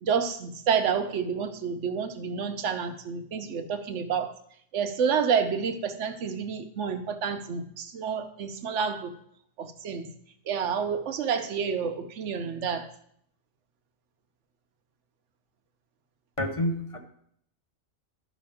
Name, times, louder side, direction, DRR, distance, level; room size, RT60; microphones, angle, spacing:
voice 1, 0.0-4.3 4.7-9.1 9.6-10.1 10.5-12.9, right 6 dB, 65° right, 7 dB, 1.0 m, -29 dB
voice 2, 16.4-17.0, left 1 dB, 30° left, 3 dB, 0.7 m, -28 dB
12.0 x 5.6 x 3.5 m, 0.68 s
omnidirectional pair, 1.4 m